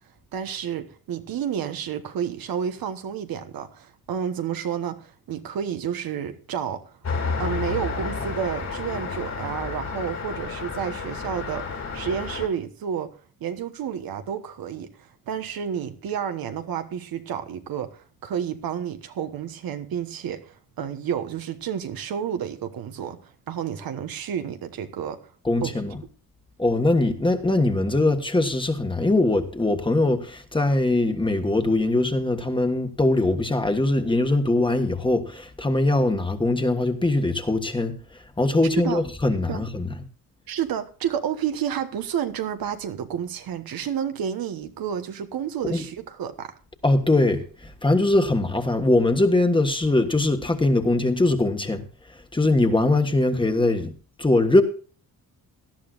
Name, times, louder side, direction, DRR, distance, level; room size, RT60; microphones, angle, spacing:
voice 1, 0.3-6.9 7.4-25.3 25.6-25.7 38.8-39.0 39.5-39.6 40.5-46.6, right 8 dB, 85° right, 1.2 m, -30 dB
Traffic noise roadway noise, 7.0-12.5, left 5 dB, 50° left, 2.9 m, -31 dB
voice 2, 25.4-26.0 26.6-38.0 38.4-39.9 45.7-45.8 46.8-51.8 52.1-53.9 54.2-54.6, left 2 dB, 15° left, 1.4 m, -21 dB
18.0 x 11.5 x 2.5 m
cardioid pair, 105°, 34 cm